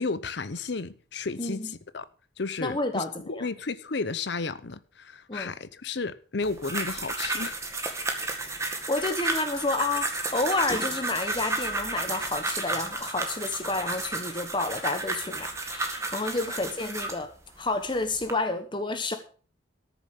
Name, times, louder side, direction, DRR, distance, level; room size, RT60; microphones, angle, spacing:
voice 1, 0.0-2.1 2.4-7.6, left 4 dB, 60° left, 0.7 m, -33 dB
voice 2, 1.4-1.7 2.6-3.5 5.3-5.5 8.9-17.3 17.6-19.2, left 2 dB, 25° left, 1.1 m, -30 dB
sound 1, 6.4-17.2 17.9-18.3, right 2 dB, 15° right, 1.8 m, -32 dB
13.5 x 7.1 x 6.6 m
head